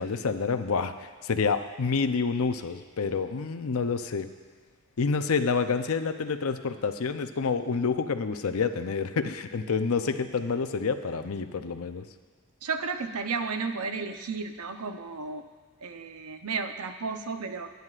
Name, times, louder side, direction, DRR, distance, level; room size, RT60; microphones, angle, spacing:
voice 1, 0.0-4.3 5.0-12.0, left 5 dB, 75° left, 9 dB, 0.6 m, -28 dB
voice 2, 12.6-15.4 15.8-17.7, right 4 dB, 85° right, 7 dB, 0.7 m, -33 dB
22.0 x 9.4 x 2.5 m, 1.4 s
head